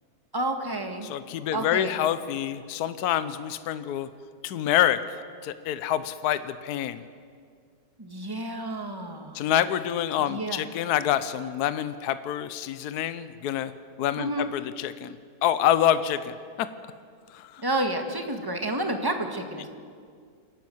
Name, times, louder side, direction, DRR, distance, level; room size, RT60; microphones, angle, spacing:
voice 1, 0.3-1.1 1.5-2.0 8.0-9.4 10.3-10.6 14.2-14.5 17.6-19.7, right 1 dB, 15° right, 5 dB, 1.5 m, -30 dB
voice 2, 1.0-4.1 4.4-7.0 9.3-13.7 14.0-15.2 15.4-16.7 17.3-17.6, left 11 dB, 70° left, 13 dB, 1.1 m, -27 dB
27.5 x 12.0 x 7.8 m, 2.1 s
omnidirectional pair, 1.9 m